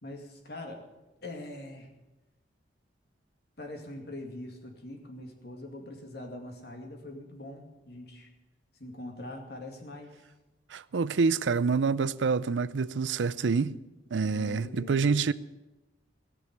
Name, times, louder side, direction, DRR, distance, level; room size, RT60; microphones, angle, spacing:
voice 1, 0.0-0.8 1.2-1.9 3.6-8.3 8.8-10.1 14.2-15.2, left 1 dB, 60° left, 2.4 m, -43 dB
voice 2, 10.7-13.8 14.1-15.3, right 5 dB, 85° right, 0.5 m, -27 dB
18.0 x 6.2 x 9.5 m
head